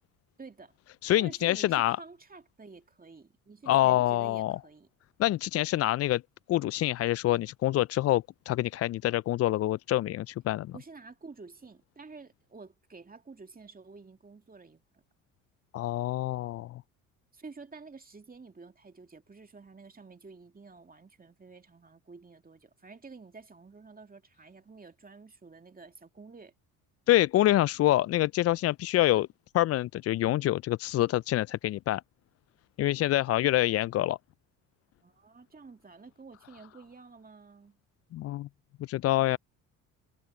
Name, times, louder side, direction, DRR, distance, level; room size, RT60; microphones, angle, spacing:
voice 1, 0.4-0.7 1.2-4.9 10.7-15.0 17.3-26.5 35.0-37.8, right 4 dB, 20° right, 2.6 m, -50 dB
voice 2, 1.0-2.0 3.7-4.6 5.2-6.2 6.5-10.7 15.7-16.8 27.1-29.3 29.5-32.0 32.8-34.2 38.1-38.5 38.8-39.4, left 14 dB, 40° left, 0.4 m, -26 dB
hypercardioid pair, 60°, 39 cm